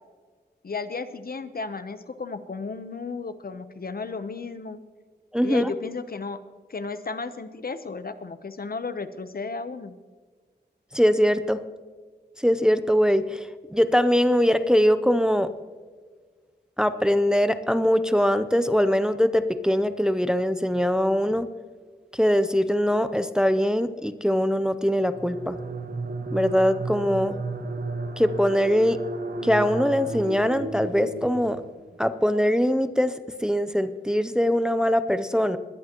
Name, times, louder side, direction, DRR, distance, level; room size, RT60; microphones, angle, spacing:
voice 1, 0.6-4.8 5.4-6.4 6.7-9.9, left 4 dB, 60° left, 11 dB, 0.9 m, -34 dB
voice 2, 5.3-5.7 10.9-11.6 12.4-15.5 16.8-21.5 22.2-25.6 26.3-27.4 28.2-29.0 29.4-31.6 32.0-33.1 33.4-35.6, equal, 5° right, 11 dB, 0.6 m, -22 dB
sound 1, 25.0-31.9, right 3 dB, 65° right, 1.2 m, -33 dB
20.0 x 11.0 x 3.0 m, 1.5 s
wide cardioid pair, 90°, 18 cm